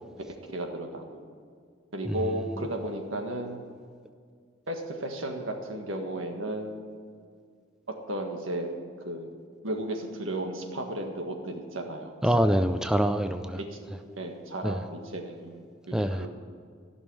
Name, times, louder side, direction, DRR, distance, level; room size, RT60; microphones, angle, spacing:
voice 1, 0.5-1.2 1.9-3.7 4.7-6.8 8.1-9.3 9.6-12.2 13.6-13.8 14.2-16.3, right 1 dB, 85° right, 3 dB, 1.7 m, -34 dB
voice 2, 12.2-13.6 14.6-14.8 15.9-16.3, equal, 5° right, 8 dB, 0.3 m, -25 dB
14.5 x 6.3 x 8.9 m, 2.1 s
head